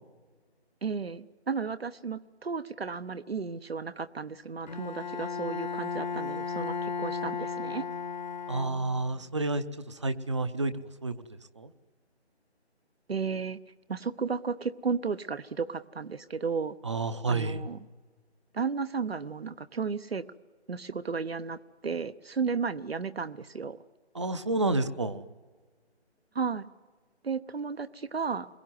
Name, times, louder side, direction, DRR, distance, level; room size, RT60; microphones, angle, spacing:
voice 1, 0.8-7.9 13.1-13.6 13.9-16.8 17.2-17.8 18.5-20.2 20.7-23.8 26.3-26.7 27.2-28.5, right 5 dB, 60° right, 11 dB, 1.0 m, -33 dB
Bowed string instrument, 4.7-9.2, left 5 dB, 40° left, 1.0 m, -35 dB
voice 2, 8.5-9.6 10.0-10.7 11.0-11.1 11.6-11.7 16.8-17.6 24.1-25.2, right 2 dB, 25° right, 12 dB, 0.8 m, -29 dB
28.5 x 21.5 x 9.5 m, 1.5 s
figure-of-eight pair, 160°, 33 cm